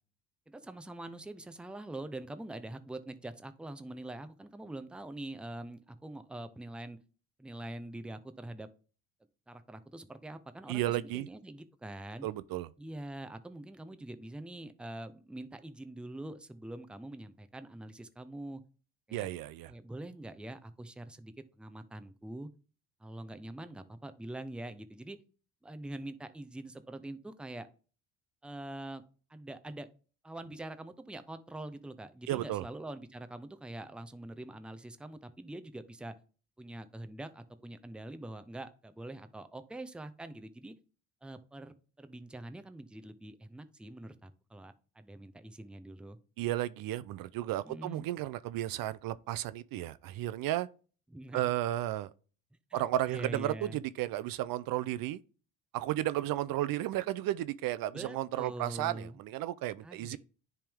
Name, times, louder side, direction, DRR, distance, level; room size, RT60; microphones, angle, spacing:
voice 1, 0.5-7.0 7.4-8.7 9.5-12.3 12.8-18.6 19.1-19.3 19.7-22.5 23.0-25.2 25.6-27.7 28.4-29.0 29.3-29.9 30.2-36.1 36.6-40.7 41.2-46.2 47.6-48.1 51.1-51.4 52.7-53.8 57.9-59.2 59.8-60.2, right 1 dB, 5° right, 0.6 m, -44 dB
voice 2, 10.7-11.3 12.2-12.7 19.1-19.7 32.3-32.6 46.4-50.7 51.3-52.1 52.7-55.2 55.7-60.2, right 14 dB, 60° right, 0.5 m, -33 dB
10.0 x 3.5 x 3.5 m
supercardioid pair, 90°, 40 cm